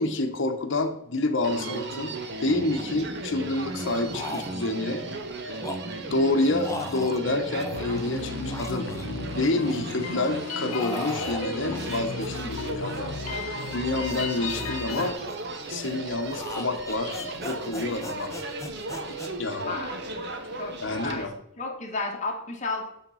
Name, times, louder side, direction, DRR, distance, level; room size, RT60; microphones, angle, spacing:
voice 1, 0.0-5.0 5.4-5.6 6.1-8.9 9.3-13.1 13.4-15.2 15.7-18.3 19.4-19.8 20.8-21.3, left 2 dB, 65° left, 6 dB, 1.0 m, -28 dB
Human voice, 1.4-21.2, right 2 dB, 55° right, 0.9 m, -35 dB
sound 1, 1.6-1.8 2.5-3.2 3.7-4.9 5.4-8.2 8.5-9.8 10.1-19.3, left 2 dB, 15° left, 0.6 m, -40 dB
sound 2, 7.7-15.1, left 5 dB, 80° left, 0.5 m, -36 dB
voice 2, 19.7-20.0 20.5-21.3 21.6-22.9, left 3 dB, 35° left, 1 dB, 1.4 m, -32 dB
8.6 x 3.6 x 5.6 m, 0.79 s
head